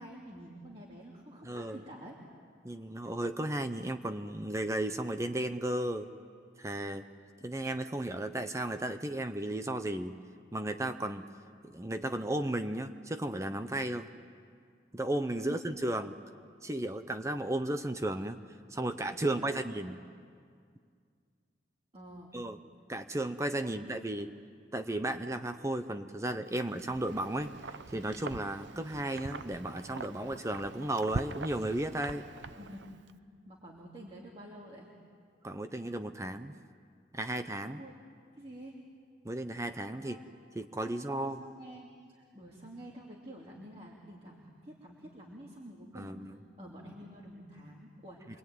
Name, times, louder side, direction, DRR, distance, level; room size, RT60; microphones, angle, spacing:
voice 1, 0.0-2.2 15.4-15.6 19.2-19.7 21.9-22.4 23.6-24.0 32.6-32.9 33.4-34.9 37.7-37.9 38.3-38.8 40.0-40.3 40.8-48.2, right 1 dB, 35° right, -4 dB, 2.9 m, -48 dB
voice 2, 1.4-1.8 2.6-6.1 6.6-7.1 7.4-10.2 10.5-11.3 11.6-14.1 14.9-16.2 16.6-18.4 18.7-20.0 22.3-22.6 22.9-24.3 24.7-32.3 35.4-36.6 37.1-37.8 39.2-40.2 40.6-41.4 45.9-46.4, right 1 dB, 15° right, 8 dB, 0.7 m, -34 dB
Wind, 26.6-33.1, right 3 dB, 80° right, 0.8 m, -43 dB
26.5 x 23.0 x 9.4 m, 2.1 s
head